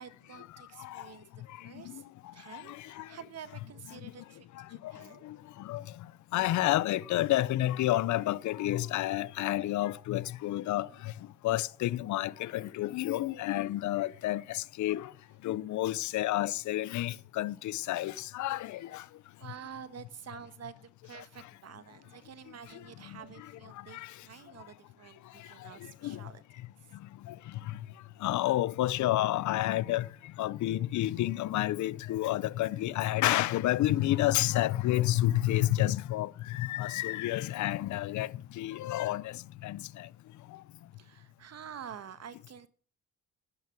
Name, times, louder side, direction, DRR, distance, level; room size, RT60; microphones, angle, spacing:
voice 1, 0.0-2.0 2.3-5.3 10.7-11.0 18.7-18.8 19.4-26.4 26.8-26.9 41.0-42.7, right 8 dB, 55° right, 1.4 m, -49 dB
voice 2, 2.5-3.1 4.8-5.4 5.6-5.8 6.3-11.1 11.4-15.1 15.4-19.0 23.9-24.1 26.0-26.2 27.3-27.4 28.2-30.1 30.4-38.3 38.6-40.1, left 15 dB, 70° left, 0.6 m, -30 dB
11.5 x 11.0 x 6.0 m
cardioid pair, 90°, 30 cm